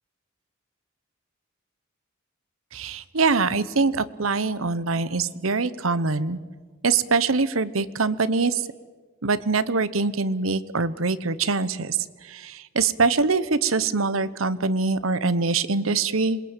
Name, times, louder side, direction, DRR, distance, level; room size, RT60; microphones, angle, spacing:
voice 1, 2.7-6.4 6.8-8.6 9.2-12.0 12.3-16.4, right 4 dB, 85° right, 15 dB, 1.1 m, -23 dB
27.0 x 21.5 x 9.1 m, 1.5 s
head